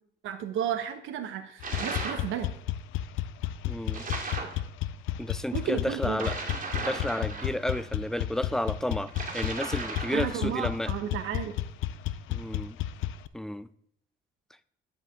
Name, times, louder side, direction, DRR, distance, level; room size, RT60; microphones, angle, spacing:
voice 1, 0.2-2.5 5.5-6.2 10.1-11.5, right 9 dB, 90° right, 8 dB, 1.0 m, -33 dB
sound 1, 1.6-13.3, left 12 dB, 90° left, 0.4 m, -33 dB
sound 2, 1.6-2.3 3.9-4.6 6.1-7.8 9.1-10.5, right 3 dB, 45° right, 2.3 m, -36 dB
voice 2, 3.7-4.1 5.2-6.4 6.7-10.9 12.3-12.8 13.3-13.7, left 1 dB, ahead, 15 dB, 0.4 m, -32 dB
10.5 x 5.0 x 3.6 m, 0.69 s
cardioid pair, 90°, 20 cm